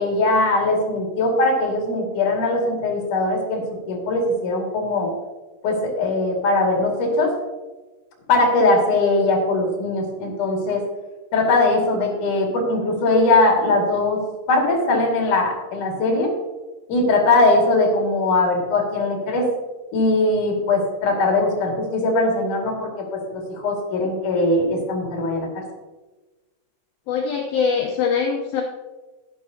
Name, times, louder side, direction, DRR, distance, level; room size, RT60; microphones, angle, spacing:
voice 1, 0.0-5.1 5.6-7.3 8.3-10.8 11.3-14.2 14.5-16.3 16.9-19.5 19.9-25.6, left 2 dB, 50° left, 0 dB, 3.1 m, -20 dB
voice 2, 27.1-28.6, left 6 dB, 85° left, 1 dB, 2.1 m, -22 dB
12.0 x 11.0 x 2.8 m, 1.2 s
omnidirectional pair, 5.3 m